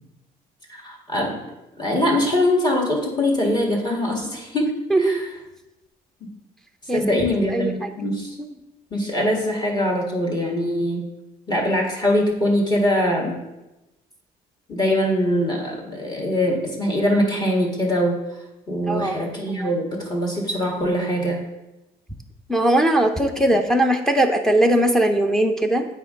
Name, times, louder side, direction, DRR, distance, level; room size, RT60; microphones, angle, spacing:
voice 1, 0.7-1.4 1.8-5.3 6.2-6.3 6.9-8.4 8.9-11.0 11.5-13.4 14.7-18.2 18.7-21.4, left 1 dB, 25° left, -2 dB, 1.6 m, -22 dB
voice 2, 4.9-5.2 6.9-7.0 7.5-7.9 8.4-8.5 18.9-19.7 22.5-25.9, right 1 dB, 5° left, 4 dB, 0.5 m, -20 dB
8.3 x 4.6 x 3.7 m, 0.98 s
cardioid pair, 110°, 17 cm